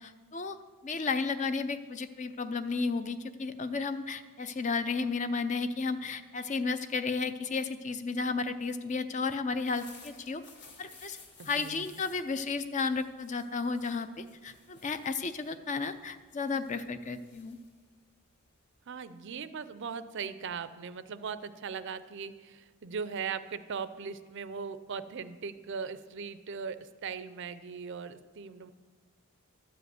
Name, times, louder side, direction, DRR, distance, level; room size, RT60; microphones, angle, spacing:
voice 1, 0.0-0.6 0.8-10.4 10.8-11.2 11.5-17.6, left 4 dB, 35° left, 11 dB, 0.4 m, -33 dB
sound 1, 9.5-18.8, left 4 dB, 50° left, 1.7 m, -56 dB
voice 2, 11.4-11.8 18.9-26.8 27.0-28.7, right 6 dB, 55° right, 13 dB, 0.5 m, -39 dB
12.5 x 5.1 x 8.0 m, 1.4 s
head